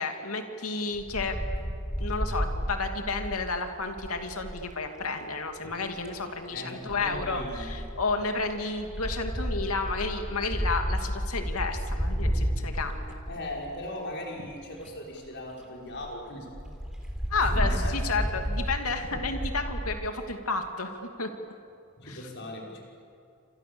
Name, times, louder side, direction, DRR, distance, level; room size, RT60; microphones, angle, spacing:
voice 1, 0.0-1.7 2.0-13.0 17.3-21.3 22.0-22.2, left 3 dB, 85° left, 5 dB, 2.7 m, -31 dB
Wind, 1.0-4.6 5.7-6.2 6.9-13.9 14.5-14.6 14.8-14.9 15.2-15.3 15.6-15.7 15.9-16.1 16.5-19.9, equal, 5° right, 3.9 m, -32 dB
voice 2, 6.5-7.8 13.3-16.6 17.4-18.2 22.0-22.8, left 1 dB, 55° left, -1 dB, 5.8 m, -39 dB
29.5 x 26.5 x 7.1 m, 2.5 s
head